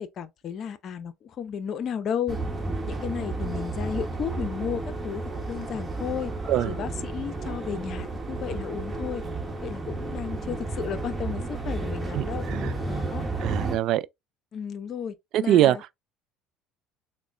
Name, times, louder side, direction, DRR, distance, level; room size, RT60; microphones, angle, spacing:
voice 1, 0.0-2.4 2.9-6.3 6.6-9.2 9.6-12.5 12.8-13.2 14.5-15.1 15.4-15.8, left 8 dB, 50° left, 0.6 m, -33 dB
sound 1, 2.3-13.8, right 2 dB, 25° right, 1.1 m, -32 dB
voice 2, 12.1-12.8 13.4-14.1 15.3-15.8, right 12 dB, 60° right, 0.3 m, -23 dB
3.7 x 2.1 x 3.3 m
hypercardioid pair, 80°, 0 cm